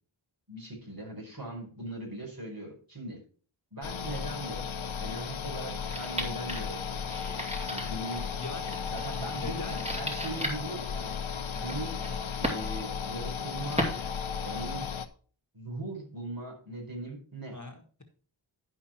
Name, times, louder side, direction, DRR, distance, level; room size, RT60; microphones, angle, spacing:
voice 1, 0.5-3.2 3.7-4.7 5.0-7.0 7.7-8.3 8.9-11.1 11.6-12.0 12.4-13.9 14.4-14.9 15.5-17.6, right 1 dB, 45° right, -1 dB, 4.6 m, -40 dB
sound 1, 3.8-15.1, left 6 dB, 70° left, 0.8 m, -35 dB
sound 2, 5.8-14.9, equal, 15° right, 2.3 m, -38 dB
voice 2, 8.3-8.8 9.2-9.8 12.0-12.3 17.5-18.0, left 3 dB, 35° left, 3 dB, 1.7 m, -42 dB
11.5 x 5.4 x 4.3 m, 0.41 s
wide cardioid pair, 55°, 49 cm